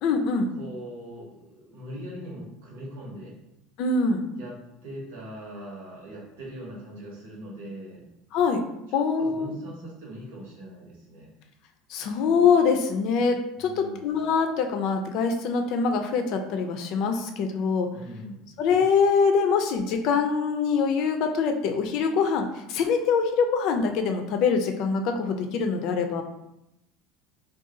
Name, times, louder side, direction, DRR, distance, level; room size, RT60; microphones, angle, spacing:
voice 1, 0.0-0.5 3.8-4.2 8.3-8.6 8.9-9.6 11.9-17.9 18.6-26.2, left 5 dB, 60° left, 5 dB, 0.4 m, -24 dB
voice 2, 0.6-3.4 4.4-4.6 4.8-8.0 8.9-11.3 13.5-14.1 17.9-18.5, equal, 85° right, -4 dB, 1.1 m, -41 dB
2.6 x 2.3 x 3.8 m, 0.86 s
supercardioid pair, 110°, 0 cm